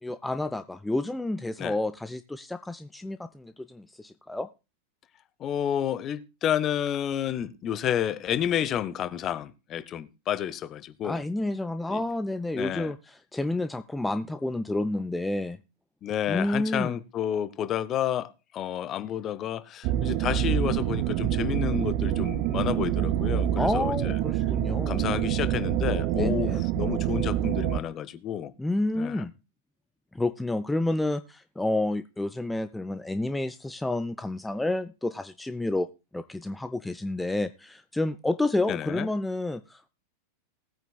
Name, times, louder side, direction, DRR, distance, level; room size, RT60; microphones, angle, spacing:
voice 1, 0.0-4.5 11.0-15.6 16.3-16.9 23.5-25.1 26.1-26.6 28.6-29.3 30.1-35.9 36.1-39.9, left 2 dB, 5° left, 0.5 m, -30 dB
voice 2, 5.4-11.2 11.9-12.0 12.5-12.9 16.0-24.2 24.9-28.5 29.0-29.3 38.7-39.1, left 10 dB, 30° left, 0.8 m, -30 dB
sound 1, 19.8-27.8, right 12 dB, 40° right, 0.5 m, -26 dB
19.0 x 9.0 x 2.3 m
figure-of-eight pair, 90°, 0 cm